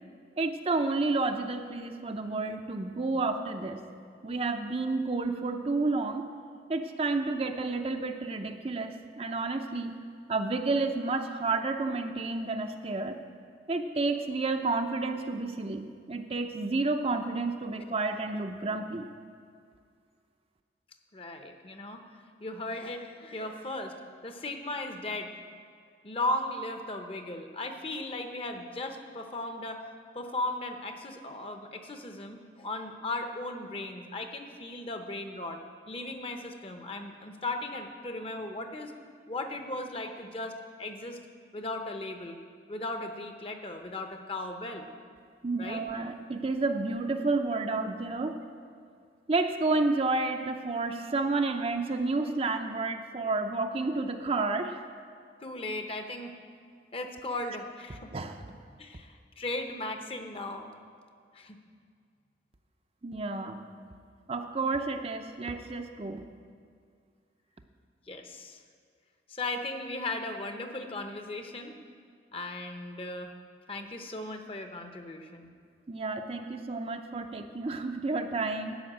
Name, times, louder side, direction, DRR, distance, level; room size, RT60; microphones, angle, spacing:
voice 1, 0.4-3.8 4.2-6.3 6.7-10.0 10.3-13.2 13.7-19.1 45.4-48.4 49.3-54.8 58.1-58.6 63.0-63.9 64.3-66.2 75.9-78.8, right 3 dB, 35° right, 6 dB, 0.6 m, -30 dB
voice 2, 21.1-22.1 22.4-24.0 24.2-25.3 26.0-29.8 30.1-35.6 35.9-38.9 39.3-41.2 41.5-42.4 42.7-44.9 45.6-45.8 55.4-56.3 56.9-58.1 58.8-60.7 61.3-61.6 68.1-68.6 69.3-71.7 72.3-73.3 73.7-75.5, left 2 dB, 30° left, 6 dB, 0.8 m, -37 dB
12.0 x 5.8 x 8.8 m, 2.2 s
head